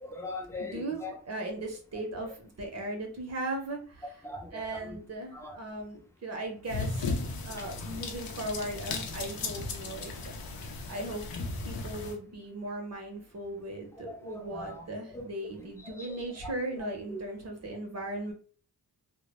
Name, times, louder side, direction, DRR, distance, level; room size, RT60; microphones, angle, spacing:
voice 1, 0.0-1.1 2.2-2.3 4.2-5.0 5.3-5.6 7.6-7.7 14.0-15.2 15.8-16.5 17.1-17.2, left 2 dB, 5° left, 2 dB, 0.5 m, -41 dB
voice 2, 0.6-4.3 4.5-10.1 10.4-10.5 10.9-11.2 11.6-18.3, right 1 dB, 40° right, 2 dB, 0.6 m, -38 dB
sound 1, 6.7-12.2, left 3 dB, 70° left, 0.5 m, -36 dB
2.0 x 2.0 x 2.9 m, 0.42 s
wide cardioid pair, 115°, 38 cm